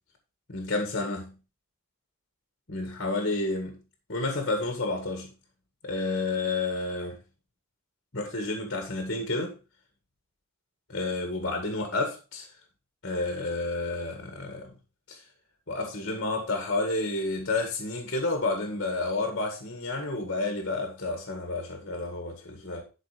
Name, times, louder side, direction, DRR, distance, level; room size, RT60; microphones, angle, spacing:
voice 1, 0.5-1.3 2.7-3.8 4.1-5.3 5.8-7.1 8.1-9.6 10.9-12.5 13.0-14.7 15.1-15.3 15.7-22.8, left 2 dB, 55° left, 1.9 m, -30 dB
12.0 x 4.5 x 5.0 m
head